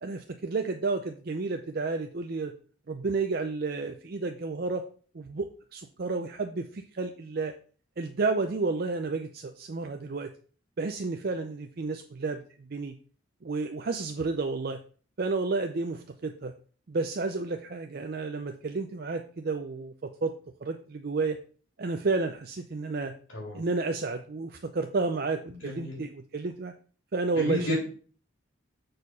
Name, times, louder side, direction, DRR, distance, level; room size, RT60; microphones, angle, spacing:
voice 1, 0.0-2.5 2.9-4.8 5.1-7.5 8.0-10.3 10.8-12.9 13.4-14.8 15.2-16.5 16.9-20.3 20.6-21.4 21.8-23.1 23.5-26.7 27.1-27.7, right 3 dB, 45° right, 6 dB, 0.5 m, -31 dB
voice 2, 23.3-23.6 25.5-26.0 27.3-27.9, left 2 dB, 75° left, -3 dB, 3.1 m, -32 dB
6.5 x 4.3 x 5.4 m, 0.42 s
head